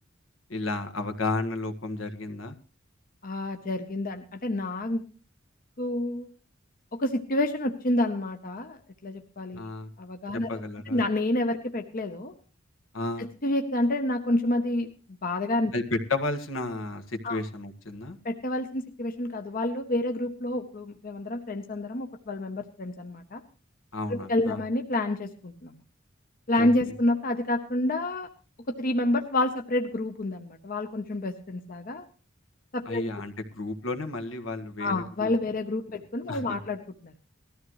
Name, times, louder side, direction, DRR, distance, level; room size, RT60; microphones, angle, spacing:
voice 1, 0.5-2.5 9.6-9.9 10.5-11.0 12.9-13.3 15.7-18.2 23.9-24.6 26.6-26.7 32.8-35.3 36.3-36.6, left 2 dB, 80° left, 6 dB, 1.6 m, -32 dB
voice 2, 3.2-5.0 5.8-6.3 6.9-9.6 10.0-10.5 10.9-12.3 13.2-14.9 15.2-15.7 17.2-17.4 18.2-23.4 24.1-25.7 26.5-28.3 28.7-32.1 32.7-33.0 34.8-37.1, left 1 dB, 45° left, 5 dB, 0.9 m, -28 dB
19.5 x 13.5 x 3.1 m, 0.36 s
head